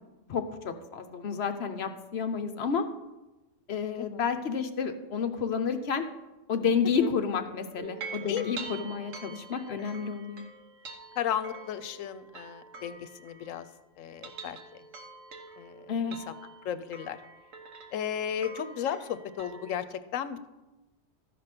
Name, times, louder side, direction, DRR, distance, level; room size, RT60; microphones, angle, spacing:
voice 1, 0.3-2.8 3.7-6.0 6.5-10.4 15.9-16.2, left 6 dB, 60° left, 7 dB, 0.9 m, -30 dB
sound 1, 7.8-13.7 14.1-19.8, right 4 dB, 75° right, 1.3 m, -46 dB
voice 2, 11.2-13.7 14.0-14.6 15.6-16.3 16.6-17.2 17.9-20.5, left 9 dB, 90° left, 12 dB, 1.0 m, -34 dB
13.5 x 5.1 x 5.9 m, 1.1 s
omnidirectional pair, 1.3 m